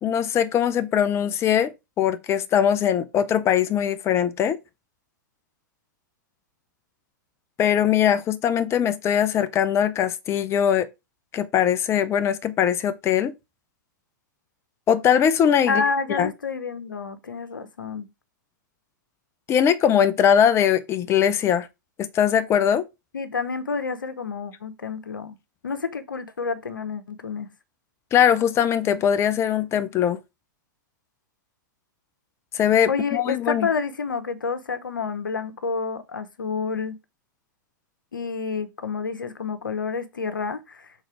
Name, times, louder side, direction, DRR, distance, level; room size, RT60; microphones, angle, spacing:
voice 1, 0.0-4.6 7.6-10.9 11.3-13.3 14.9-15.8 16.2-16.3 19.5-21.7 22.0-22.8 28.1-30.2 32.5-33.7, left 9 dB, 25° left, 0.7 m, -21 dB
voice 2, 15.7-18.1 23.1-25.4 25.6-27.5 32.9-37.0 38.1-40.9, left 5 dB, 90° left, 1.1 m, -29 dB
6.4 x 3.8 x 4.9 m
hypercardioid pair, 115°, 11 cm